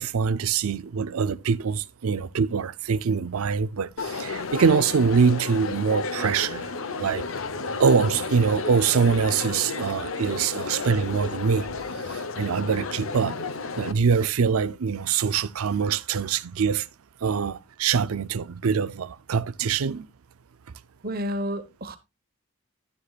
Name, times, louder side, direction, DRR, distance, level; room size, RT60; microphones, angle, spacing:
voice 1, 0.0-6.7 7.0-7.3 7.8-11.7 12.0-13.4 13.8-16.9 17.2-20.1, right 6 dB, 80° right, 0.5 m, -24 dB
Crowd, 4.0-13.9, left 4 dB, 70° left, 0.8 m, -32 dB
voice 2, 21.0-22.0, equal, 45° right, 1.1 m, -30 dB
11.5 x 9.5 x 2.4 m
head